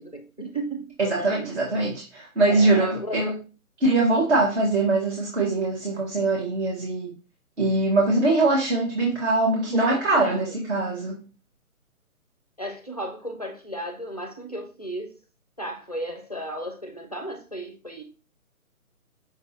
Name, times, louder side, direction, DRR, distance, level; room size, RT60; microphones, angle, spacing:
voice 1, 0.0-1.8 2.5-3.4 9.7-10.5 12.6-15.2 15.6-18.0, right 1 dB, 30° left, 0.4 m, -35 dB
voice 2, 1.0-3.3 3.8-7.1 7.6-11.2, right 2 dB, 50° right, 1.3 m, -22 dB
5.4 x 3.3 x 2.7 m
figure-of-eight pair, 145°, 44 cm